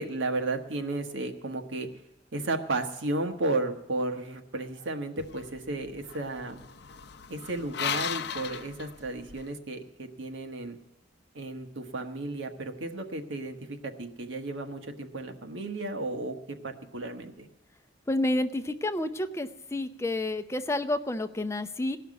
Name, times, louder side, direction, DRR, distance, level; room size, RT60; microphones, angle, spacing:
voice 1, 0.0-1.9 2.3-6.6 7.3-10.8 11.3-17.5, right 2 dB, 85° right, 5 dB, 1.3 m, -33 dB
sound 1, 5.2-9.5, left 8 dB, 60° left, 0.6 m, -37 dB
voice 2, 18.1-22.0, left 1 dB, 15° left, 10 dB, 0.5 m, -29 dB
17.5 x 5.9 x 9.4 m, 0.92 s
head